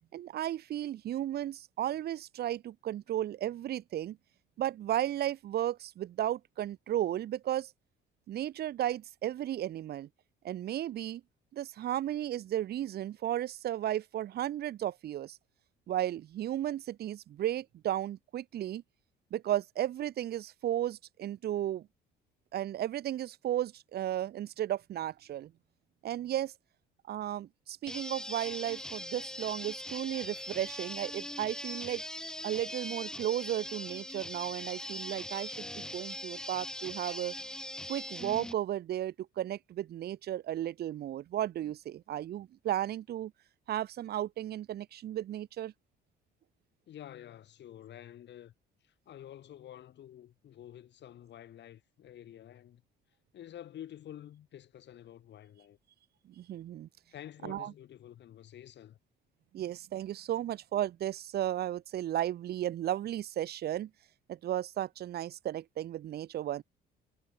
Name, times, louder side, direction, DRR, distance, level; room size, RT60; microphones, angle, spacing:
voice 1, 0.1-4.2 4.6-7.7 8.3-10.1 10.4-11.2 11.5-15.4 15.9-18.8 19.3-21.9 22.5-25.5 26.0-26.5 27.1-32.0 32.4-37.4 37.9-43.3 43.7-45.7 56.4-56.9 57.4-57.7 59.5-63.9 64.3-66.6, right 12 dB, 50° right, 0.6 m, -34 dB
sound 1, 27.9-38.5, left 1 dB, 5° left, 0.5 m, -41 dB
voice 2, 46.9-48.5 48.8-52.8 53.3-55.8 57.1-59.0, left 11 dB, 60° left, 2.3 m, -49 dB
supercardioid pair, 75°, 21 cm